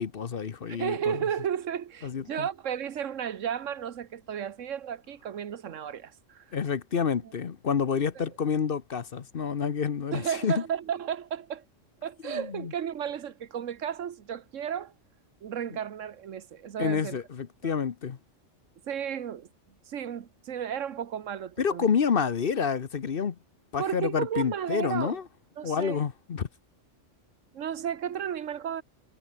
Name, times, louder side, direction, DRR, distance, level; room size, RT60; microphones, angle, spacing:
voice 1, 0.0-1.2 2.0-2.5 6.5-10.6 12.2-12.7 16.8-18.2 21.6-23.4 23.7-25.2 25.6-26.5, left 6 dB, 50° left, 1.1 m, -28 dB
voice 2, 0.7-6.4 8.2-8.3 10.1-11.6 12.0-14.9 15.4-17.2 17.6-17.7 18.9-19.5 19.9-21.9 23.8-25.2 25.6-26.0 27.5-28.8, right 9 dB, 85° right, 1.4 m, -33 dB
omnidirectional pair, 1.3 m